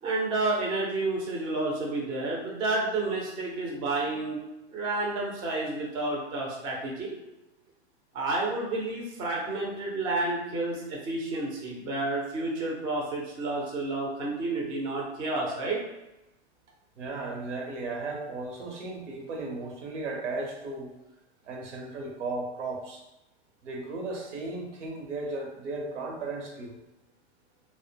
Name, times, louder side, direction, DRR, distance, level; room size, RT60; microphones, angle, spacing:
voice 1, 0.0-4.4 4.7-7.2 8.1-15.8, right 2 dB, 15° right, -2 dB, 0.3 m, -30 dB
voice 2, 17.0-20.9 21.5-23.0 23.6-26.8, right 3 dB, 90° right, 1 dB, 0.8 m, -35 dB
2.0 x 2.0 x 3.3 m, 0.97 s
hypercardioid pair, 125°, 34 cm